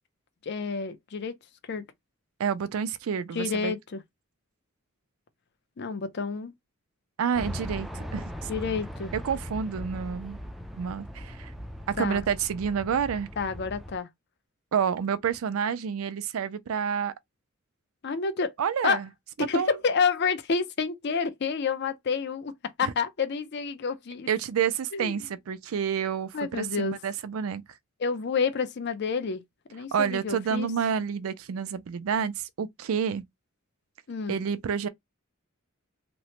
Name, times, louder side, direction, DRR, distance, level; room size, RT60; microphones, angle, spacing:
voice 1, 0.4-1.4 1.7-1.9 3.3-4.0 5.8-6.5 8.5-9.1 12.0-12.2 13.4-14.1 18.0-18.5 18.8-19.0 19.4-22.5 22.8-24.3 24.9-25.2 26.3-27.0 28.0-29.4 29.7-30.7 34.1-34.4, left 5 dB, 55° left, 0.5 m, -29 dB
voice 2, 2.4-3.7 7.2-8.5 9.1-10.4 10.7-11.5 11.9-13.3 14.7-17.1 18.6-19.1 19.4-19.8 22.8-22.9 24.3-27.6 29.9-33.2 34.3-34.9, right 7 dB, 85° right, 0.4 m, -29 dB
sound 1, 7.4-14.0, equal, ahead, 0.3 m, -39 dB
2.9 x 2.0 x 2.8 m
head